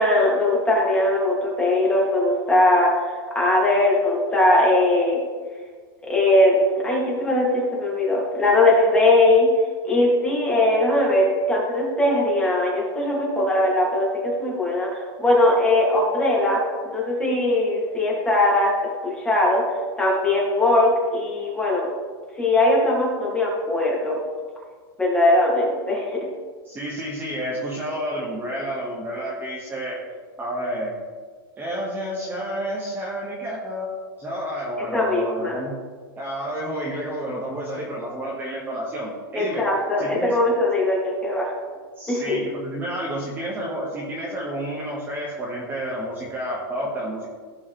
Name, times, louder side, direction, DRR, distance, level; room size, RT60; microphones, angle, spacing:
voice 1, 0.0-2.9 3.3-5.2 6.0-6.6 6.8-9.5 9.8-18.7 19.0-19.6 20.0-21.9 22.4-24.2 25.0-26.3 34.8-35.6 39.3-41.5 42.1-42.4, left 1 dB, 10° left, -4 dB, 2.7 m, -20 dB
voice 2, 26.7-30.0 30.4-30.9 31.6-33.9 34.2-35.8 36.2-39.6 40.0-40.3 42.0-47.3, right 1 dB, 15° right, -5 dB, 1.8 m, -30 dB
15.5 x 5.4 x 3.5 m, 1.5 s
supercardioid pair, 140°, 13 cm